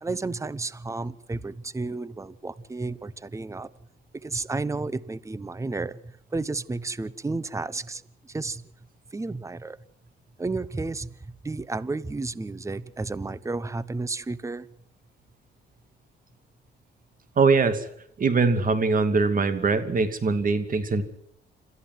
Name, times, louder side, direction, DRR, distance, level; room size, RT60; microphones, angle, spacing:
voice 1, 0.0-3.7 4.1-8.7 9.1-9.8 10.4-14.7, right 3 dB, 15° right, 19 dB, 0.9 m, -32 dB
voice 2, 17.4-17.9 18.2-21.0, right 4 dB, 45° right, 10 dB, 2.6 m, -22 dB
27.0 x 14.0 x 7.8 m, 0.71 s
cardioid pair, 90°, 20 cm